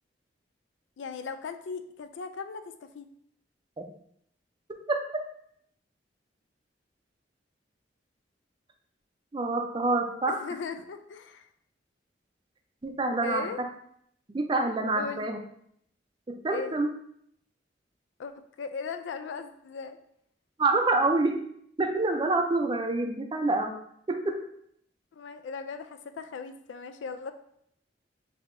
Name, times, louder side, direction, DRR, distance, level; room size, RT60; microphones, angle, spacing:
voice 1, 1.0-3.1 10.3-11.5 13.2-13.6 15.0-15.3 16.5-16.8 18.2-18.3 18.6-20.0 25.1-27.3, left 5 dB, 90° left, 9 dB, 0.4 m, -38 dB
voice 2, 9.3-10.4 12.8-13.4 14.3-15.4 16.3-16.9 20.6-21.4 21.8-23.8 24.1-24.4, right 2 dB, 25° right, 5 dB, 0.4 m, -27 dB
5.5 x 2.8 x 2.6 m, 0.70 s
head